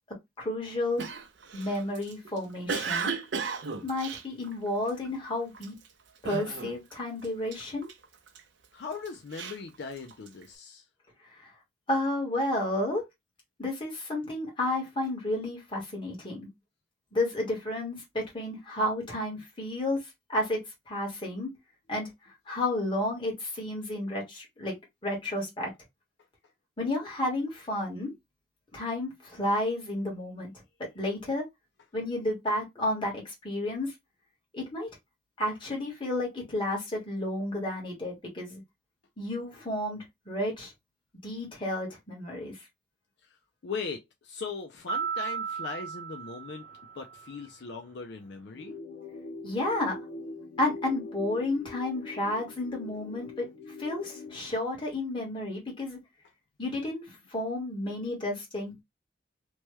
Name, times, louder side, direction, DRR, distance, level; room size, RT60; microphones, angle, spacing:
voice 1, 0.1-1.0 1.5-3.1 3.8-5.8 6.2-7.9 11.3-11.5 11.9-13.0 13.6-16.5 17.1-20.0 20.3-21.5 21.9-22.1 22.5-24.8 25.0-25.7 26.8-28.1 28.7-30.5 30.8-31.4 31.9-33.9 34.5-34.9 35.4-38.6 39.2-40.7 41.2-42.6 49.4-50.0 50.6-53.5 53.8-56.0 56.6-58.8, left 1 dB, 25° left, 1.4 m, -31 dB
Cough, 1.0-5.1 5.5-5.9 6.2-7.0 7.2-8.4 8.9-10.4, right 5 dB, 75° right, 0.6 m, -35 dB
voice 2, 8.7-10.9 43.2-43.4 43.6-46.6 46.9-48.8, left 5 dB, 65° left, 0.4 m, -39 dB
sound 1, 44.9-47.4, right 6 dB, 5° right, 0.9 m, -35 dB
sound 2, 48.5-54.5, left 3 dB, 90° left, 0.8 m, -43 dB
3.0 x 2.2 x 3.1 m
head